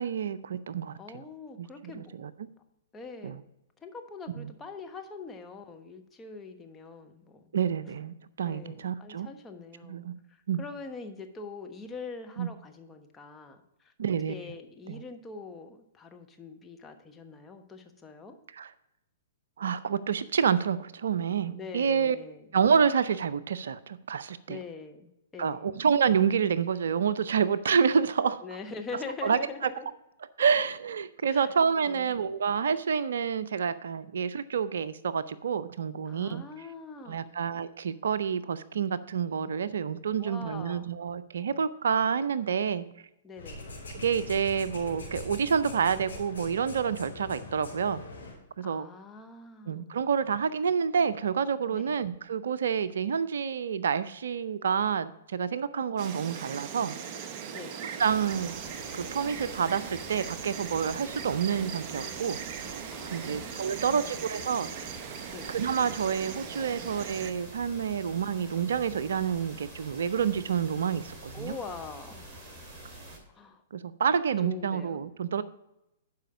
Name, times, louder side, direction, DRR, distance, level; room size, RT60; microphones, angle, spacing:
voice 1, 0.0-1.0 1.6-2.3 3.2-3.4 4.4-4.5 7.5-9.3 9.8-10.2 10.5-10.6 12.4-12.5 14.0-14.3 14.9-15.0 18.6-18.7 19.6-22.2 22.5-24.6 25.4-28.4 29.2-29.7 30.4-36.4 37.1-42.9 43.9-48.0 48.6-48.9 49.7-56.9 57.8-58.5 58.9-62.8 63.1-64.9 65.5-71.6 73.7-75.4, right 7 dB, 70° right, 15 dB, 0.4 m, -28 dB
voice 2, 1.0-2.2 2.9-3.4 3.8-7.4 8.4-10.0 10.3-13.9 14.3-18.4 21.5-22.5 24.5-25.7 28.4-29.9 31.3-31.5 31.9-32.2 36.1-37.4 40.2-40.9 43.2-43.7 48.6-50.0 51.7-52.0 57.5-57.8 62.9-64.2 65.3-65.5 71.3-72.3 73.3-73.6 74.4-75.0, left 4 dB, 15° left, 4 dB, 1.1 m, -43 dB
sound 1, 43.4-48.3, left 2 dB, 80° left, 3.1 m, -42 dB
Insect, 56.0-67.3, right 7 dB, 40° right, 0.8 m, -40 dB
sound 2, 58.0-73.2, right 1 dB, 20° right, 3.0 m, -47 dB
11.5 x 5.0 x 5.1 m, 0.87 s
figure-of-eight pair, 115°, 0 cm